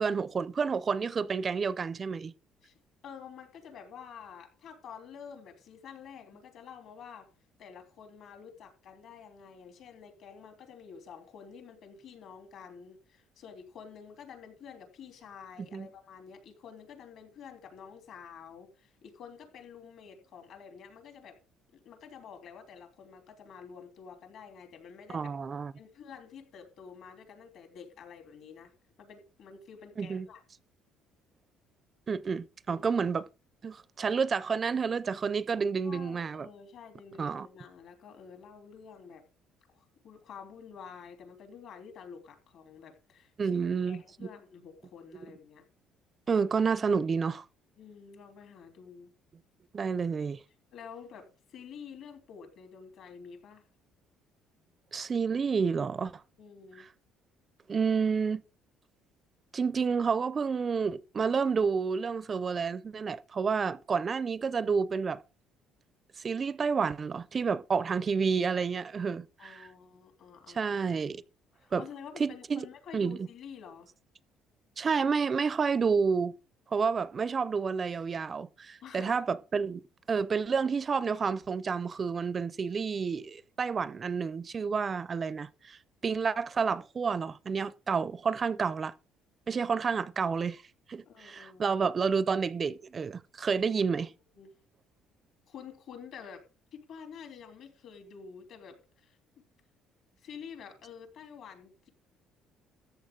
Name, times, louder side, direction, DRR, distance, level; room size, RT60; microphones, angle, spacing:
voice 1, 0.0-2.3 15.7-15.9 25.1-25.7 30.0-30.3 32.1-33.3 33.6-36.5 37.2-37.5 43.4-44.3 45.1-45.3 46.3-47.4 49.7-50.4 54.9-56.2 57.7-58.4 59.5-65.2 66.2-69.7 70.5-71.2 71.7-71.9 72.2-72.6 72.9-73.2 74.8-76.4 76.7-79.8 80.1-85.8 86.0-88.9 89.5-90.6 90.9-94.1, right 5 dB, 30° right, 0.4 m, -30 dB
voice 2, 3.0-7.3 7.6-21.4 21.7-25.3 25.8-28.7 29.0-30.4 32.7-32.9 35.8-39.2 39.7-43.6 43.9-45.6 47.8-49.1 50.7-53.6 56.4-56.9 69.4-70.8 71.6-73.9 78.8-79.2 91.0-91.7 93.6-94.0 94.3-94.5 95.5-96.4 96.7-99.2 100.2-101.9, left 6 dB, 60° left, 3.3 m, -49 dB
14.0 x 7.9 x 3.7 m
cardioid pair, 130°, 0 cm